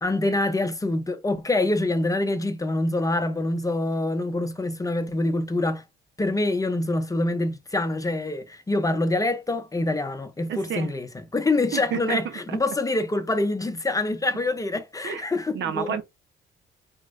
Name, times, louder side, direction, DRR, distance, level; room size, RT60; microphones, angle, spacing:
voice 1, 0.0-5.8 6.2-16.0, left 2 dB, 15° left, 0.7 m, -25 dB
voice 2, 10.5-10.9 11.7-12.2 12.5-12.6 15.0-15.2 15.5-16.0, right 8 dB, 65° right, 0.8 m, -29 dB
3.7 x 3.0 x 2.6 m
cardioid pair, 90°, 20 cm